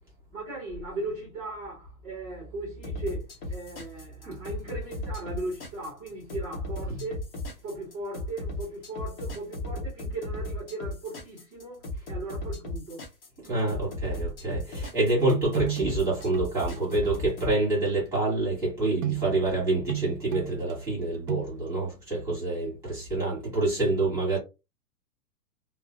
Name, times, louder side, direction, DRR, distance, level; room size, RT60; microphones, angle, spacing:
voice 1, 0.3-7.3 7.6-13.0, right 2 dB, 20° right, 0.7 m, -37 dB
sound 1, 2.8-17.5, left 1 dB, 35° left, 0.9 m, -35 dB
voice 2, 13.4-24.4, right 2 dB, 5° right, 1.4 m, -27 dB
sound 2, 15.2-16.4 16.8-16.9 19.0-19.5 19.9-20.7 21.3-21.4, right 15 dB, 60° right, 0.5 m, -32 dB
2.5 x 2.1 x 2.4 m
hypercardioid pair, 165°, 48 cm